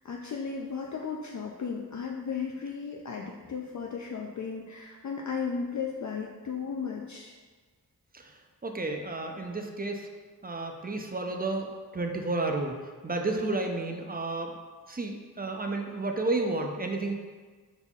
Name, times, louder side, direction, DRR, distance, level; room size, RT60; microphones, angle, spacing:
voice 1, 0.0-7.3, left 5 dB, 50° left, 0 dB, 0.5 m, -35 dB
voice 2, 8.1-10.1 10.4-12.8 13.0-14.6 14.9-17.1, right 2 dB, 25° right, 3 dB, 0.5 m, -32 dB
5.5 x 4.0 x 2.3 m, 1.5 s
cardioid pair, 50°, 36 cm